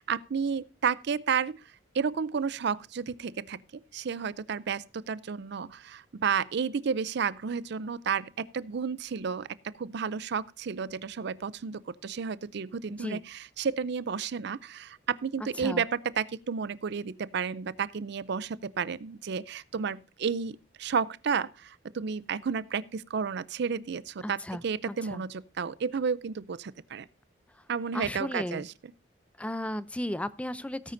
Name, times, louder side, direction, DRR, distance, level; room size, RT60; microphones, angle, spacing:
voice 1, 0.0-1.6 1.9-27.1 27.7-28.7, right 6 dB, 65° right, 0.5 m, -32 dB
voice 2, 24.2-25.2 27.9-28.6 29.4-30.9, left 1 dB, 5° left, 0.4 m, -35 dB
17.5 x 9.4 x 2.6 m
head